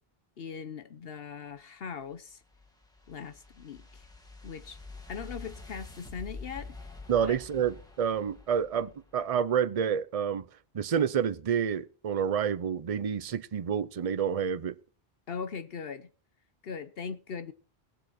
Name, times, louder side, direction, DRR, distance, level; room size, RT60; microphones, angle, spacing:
voice 1, 0.4-2.4 3.1-4.1 4.4-4.8 5.1-6.8 7.2-7.4 15.3-16.1 16.6-17.5, left 6 dB, 70° left, 1.0 m, -40 dB
sound 1, 2.0-9.3, left 3 dB, 5° left, 1.8 m, -47 dB
voice 2, 7.1-10.5 10.7-14.8, right 8 dB, 40° right, 0.7 m, -29 dB
17.5 x 8.0 x 4.4 m
omnidirectional pair, 1.0 m